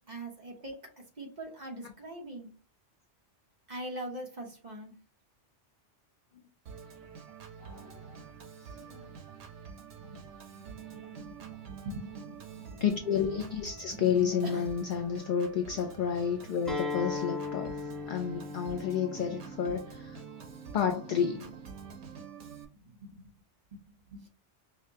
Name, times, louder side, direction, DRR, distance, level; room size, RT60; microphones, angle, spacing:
voice 1, 0.0-2.5 3.7-5.0 10.0-10.3 10.9-12.8 13.9-14.7 22.1-23.2 23.7-24.3, right 1 dB, 40° right, 1.0 m, -44 dB
Organ, 6.7-22.7, right 7 dB, 80° right, 1.2 m, -47 dB
voice 2, 7.6-8.0 8.7-9.1 12.8-17.8 18.1-20.2 20.7-21.5, left 8 dB, 60° left, 0.5 m, -31 dB
Acoustic guitar, 16.7-21.9, left 4 dB, ahead, 0.9 m, -39 dB
5.3 x 2.1 x 2.7 m
omnidirectional pair, 1.2 m